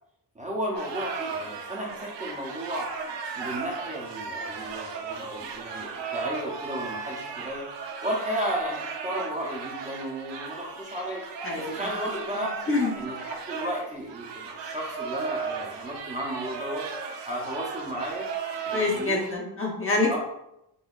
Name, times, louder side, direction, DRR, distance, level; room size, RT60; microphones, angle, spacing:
voice 1, 0.4-2.9 3.4-11.2 11.6-12.5 13.0-16.9 17.2-18.3 18.7-19.3 20.1-20.2, equal, 20° right, -3 dB, 0.6 m, -34 dB
sound 1, 0.7-19.3, right 5 dB, 80° right, 0.6 m, -36 dB
voice 2, 11.4-11.9 12.3-12.9 18.7-20.2, left 3 dB, 30° left, -2 dB, 0.7 m, -27 dB
5.3 x 2.8 x 2.4 m, 0.83 s
wide cardioid pair, 165°, 41 cm